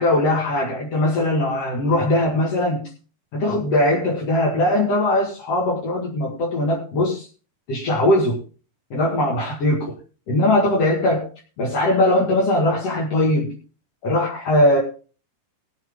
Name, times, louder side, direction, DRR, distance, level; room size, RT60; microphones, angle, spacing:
voice 1, 0.0-2.9 3.3-7.3 7.7-8.4 8.9-9.9 10.3-11.3 11.6-13.5 14.0-14.8, left 1 dB, 45° left, -3 dB, 2.6 m, -20 dB
20.5 x 7.7 x 3.7 m, 0.36 s
omnidirectional pair, 5.0 m